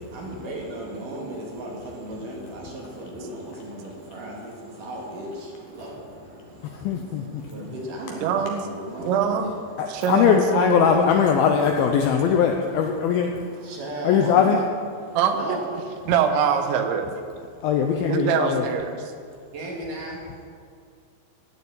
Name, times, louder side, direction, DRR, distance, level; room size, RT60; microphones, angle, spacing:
voice 1, 0.0-10.5 11.1-15.6 19.5-20.2, right 1 dB, 55° right, -1 dB, 3.0 m, -37 dB
voice 2, 6.6-7.4 9.8-13.3 14.0-14.6 17.6-18.6, left 7 dB, 85° left, 3 dB, 2.2 m, -20 dB
voice 3, 8.2-8.6 9.1-9.5 9.9-11.1 15.2-15.6 16.1-17.1 18.1-19.0, right 7 dB, 90° right, 7 dB, 3.4 m, -23 dB
16.0 x 6.9 x 8.5 m, 2.2 s
omnidirectional pair, 5.1 m